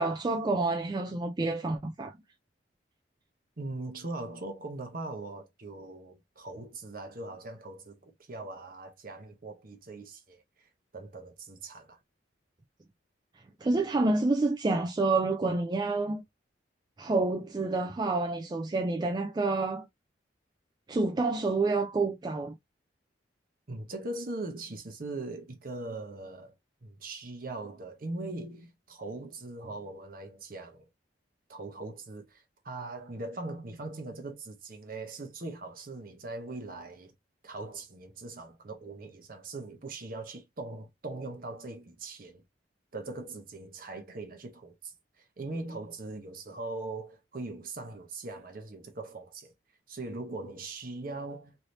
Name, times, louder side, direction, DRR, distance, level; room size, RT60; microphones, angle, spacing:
voice 1, 0.0-2.1 13.6-16.2 17.0-19.9 20.9-22.5, right 3 dB, 20° right, 0.3 m, -28 dB
voice 2, 3.6-10.7 10.9-12.0 23.7-26.5 26.8-30.8 31.5-37.1 37.4-42.4 42.9-49.5 49.9-51.7, right 2 dB, 50° right, 0.8 m, -40 dB
3.2 x 2.7 x 2.6 m
head